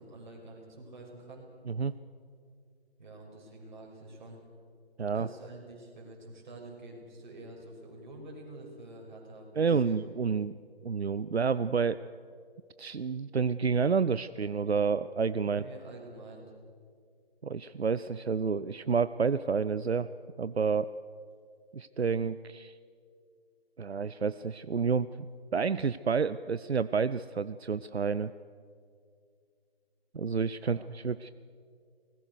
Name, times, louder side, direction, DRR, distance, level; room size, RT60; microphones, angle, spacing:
voice 1, 0.0-1.5 3.0-4.4 5.1-10.0 15.5-16.4 30.6-30.9, right 2 dB, 45° right, 0 dB, 6.4 m, -47 dB
voice 2, 9.6-10.5 10.8-12.0 12.8-15.7 17.4-20.1 20.4-20.9 21.7-22.8 23.8-25.1 25.5-28.3 30.1-31.3, right 5 dB, 85° right, 15 dB, 0.6 m, -29 dB
25.0 x 20.0 x 6.6 m, 2.3 s
figure-of-eight pair, 145°, 31 cm